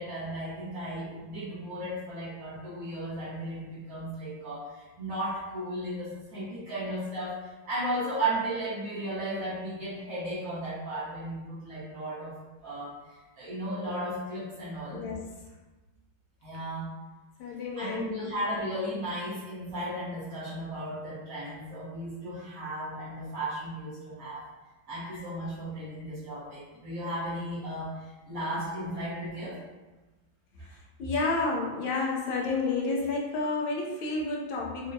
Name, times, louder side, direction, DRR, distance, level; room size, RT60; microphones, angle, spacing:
voice 1, 0.0-12.3 12.6-15.1 16.4-16.9 17.7-24.4 24.9-29.6, right 1 dB, 50° right, -9 dB, 1.4 m, -35 dB
voice 2, 14.9-15.2 17.4-18.3 18.9-19.0 30.7-34.9, left 3 dB, 75° left, -1 dB, 1.3 m, -30 dB
4.4 x 2.7 x 2.6 m, 1.2 s
omnidirectional pair, 2.2 m